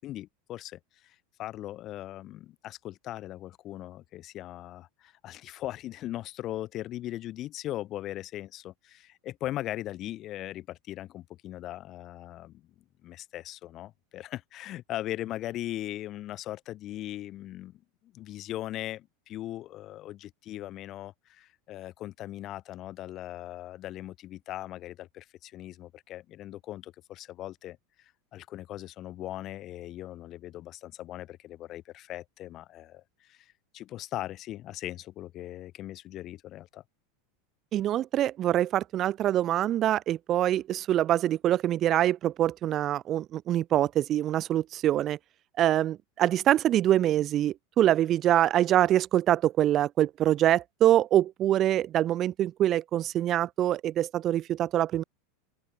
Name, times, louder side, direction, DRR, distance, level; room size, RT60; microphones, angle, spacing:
voice 1, 0.0-12.7 13.0-36.8, left 14 dB, 40° left, 5.3 m, -39 dB
voice 2, 37.7-45.2 45.6-55.0, right 12 dB, 40° right, 2.1 m, -25 dB
open air
supercardioid pair, 120°, 0 cm